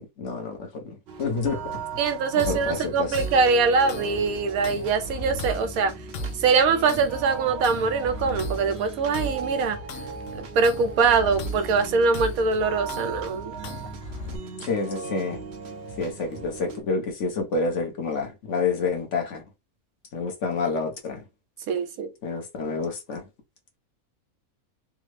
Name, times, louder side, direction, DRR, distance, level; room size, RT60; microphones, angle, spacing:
voice 1, 0.0-1.8 2.3-3.2 14.6-15.4 16.0-19.4 20.1-21.2 22.2-23.2, left 4 dB, 60° left, 1.1 m, -29 dB
sound 1, 1.1-16.8, right 5 dB, 60° right, 0.8 m, -38 dB
voice 2, 2.0-5.9 6.4-9.8 10.3-13.5 21.7-22.1, right 4 dB, 85° right, 1.1 m, -23 dB
sound 2, 2.4-14.4, left 1 dB, 80° left, 1.1 m, -37 dB
3.5 x 2.0 x 3.1 m
omnidirectional pair, 1.5 m